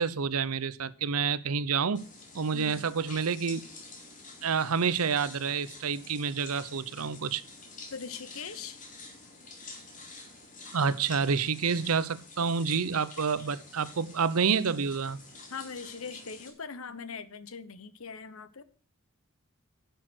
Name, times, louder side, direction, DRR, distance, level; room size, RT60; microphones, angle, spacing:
voice 1, 0.0-2.0 2.3-3.6 4.4-7.4 10.7-15.2, right 6 dB, 90° right, 0.7 m, -28 dB
sound 1, 1.9-16.5, left 3 dB, 35° left, 2.7 m, -48 dB
voice 2, 2.5-2.9 7.9-8.8 15.5-18.6, left 5 dB, 75° left, 1.0 m, -41 dB
10.5 x 6.7 x 6.2 m
head